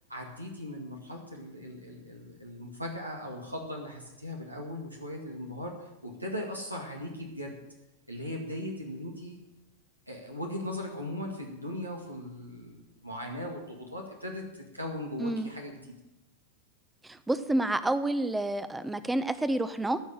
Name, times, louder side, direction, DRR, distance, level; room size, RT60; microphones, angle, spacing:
voice 1, 0.1-7.6 8.1-9.4 10.1-15.8, left 1 dB, 85° right, 0 dB, 2.1 m, -38 dB
voice 2, 15.2-15.5 17.0-20.0, right 1 dB, 5° right, 13 dB, 0.8 m, -29 dB
15.5 x 6.3 x 9.0 m, 0.96 s
figure-of-eight pair, 90°, 0 cm